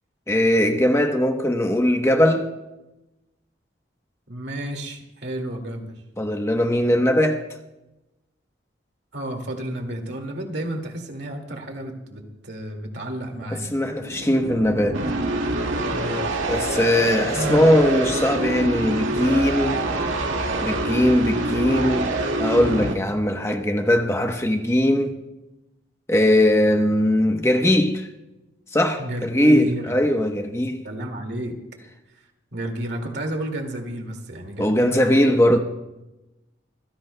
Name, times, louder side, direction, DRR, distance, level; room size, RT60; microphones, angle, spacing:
voice 1, 0.3-2.5 6.2-7.4 13.5-15.0 16.5-19.8 20.6-25.2 26.1-28.1 28.7-30.9 34.6-35.6, left 1 dB, 15° left, 0.9 m, -20 dB
voice 2, 4.3-5.9 9.1-13.7 15.9-16.2 17.3-17.7 29.0-30.0 30.5-30.6 30.8-31.6 32.5-35.1, right 1 dB, 60° right, 2.2 m, -31 dB
sound 1, 14.0-23.0, right 2 dB, 90° right, 1.9 m, -26 dB
26.0 x 16.5 x 2.2 m
head